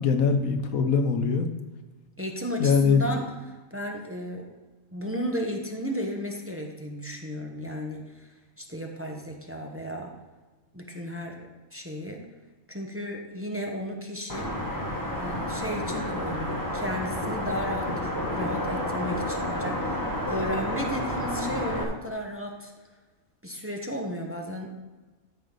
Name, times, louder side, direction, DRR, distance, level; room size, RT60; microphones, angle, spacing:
voice 1, 0.0-1.5 2.6-3.2, left 5 dB, 85° left, 7 dB, 1.3 m, -22 dB
voice 2, 2.2-4.5 4.9-10.1 10.7-12.2 12.7-14.5 15.2-22.7 23.4-24.8, equal, 10° right, 1 dB, 0.9 m, -34 dB
sound 1, 14.3-21.8, left 1 dB, 15° left, 1.3 m, -30 dB
13.5 x 5.8 x 3.9 m, 1.2 s
omnidirectional pair, 1.4 m